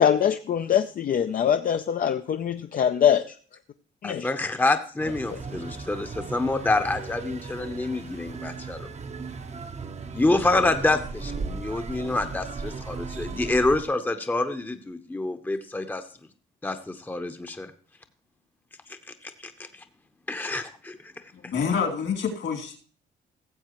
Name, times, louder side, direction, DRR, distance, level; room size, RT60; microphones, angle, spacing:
voice 1, 0.0-3.4 4.0-4.3 5.3-5.4, left 9 dB, 45° left, 8 dB, 0.5 m, -23 dB
voice 2, 4.0-8.9 10.1-16.0 16.6-17.7 19.2-19.5 20.3-21.0 21.4-21.5, left 2 dB, 10° left, 7 dB, 0.8 m, -27 dB
sound 1, 5.0-13.8, right 4 dB, 35° right, 0.8 m, -37 dB
voice 3, 21.3-22.8, left 6 dB, 70° left, 2 dB, 2.7 m, -27 dB
16.5 x 7.4 x 3.0 m, 0.43 s
cardioid pair, 90°, 20 cm